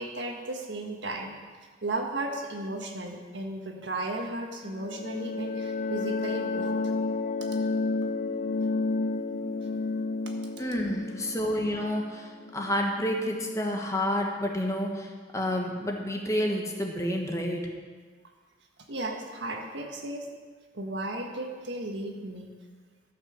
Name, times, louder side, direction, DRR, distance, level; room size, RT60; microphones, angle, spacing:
voice 1, 0.0-1.3 1.8-6.7 18.9-20.3 20.7-22.5, right 2 dB, 85° right, 2 dB, 1.5 m, -35 dB
sound 1, 4.6-13.2, left 3 dB, 45° left, 0.4 m, -31 dB
voice 2, 10.6-17.7, equal, 20° left, 1 dB, 1.3 m, -29 dB
13.0 x 5.9 x 7.1 m, 1.5 s
head